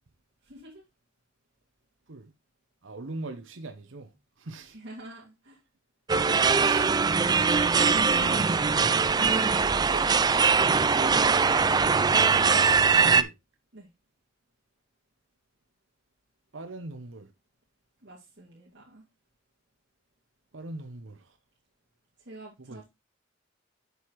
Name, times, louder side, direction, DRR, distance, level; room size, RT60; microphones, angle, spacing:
voice 1, 0.4-0.8 4.6-5.6 9.6-10.1 10.8-11.4 13.7-13.9 18.0-19.0 22.2-22.9, right 1 dB, 60° right, 2.4 m, -45 dB
voice 2, 2.8-4.1 4.4-4.8 6.5-7.2 7.9-9.0 13.0-13.3 16.5-17.3 20.5-21.2 22.7-22.8, right 2 dB, 80° right, 0.9 m, -41 dB
sound 1, 6.1-13.2, right 5 dB, 20° right, 0.3 m, -22 dB
8.0 x 6.3 x 3.1 m
head